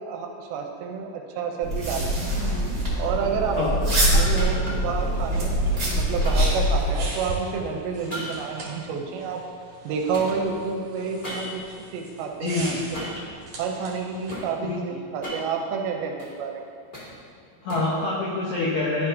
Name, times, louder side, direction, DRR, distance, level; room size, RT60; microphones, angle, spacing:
voice 1, 0.0-2.2 3.0-3.6 3.8-9.4 9.8-13.1 13.6-16.6, right 5 dB, 80° right, 2 dB, 2.4 m, -30 dB
sound 1, 1.6-7.0, equal, 35° right, 1.5 m, -23 dB
sound 2, 4.3-5.0 6.2-7.2 8.1-9.8 10.1-11.8 12.9-13.3 13.9-14.5 15.0-16.3 16.7-18.0, equal, 55° left, 0.5 m, -37 dB
sound 3, 4.9-14.5, right 2 dB, 50° right, 1.6 m, -41 dB
voice 2, 12.4-12.8 14.6-14.8 17.6-19.1, left 3 dB, 75° left, -7 dB, 1.7 m, -26 dB
12.0 x 5.5 x 2.7 m, 2.2 s
omnidirectional pair, 4.6 m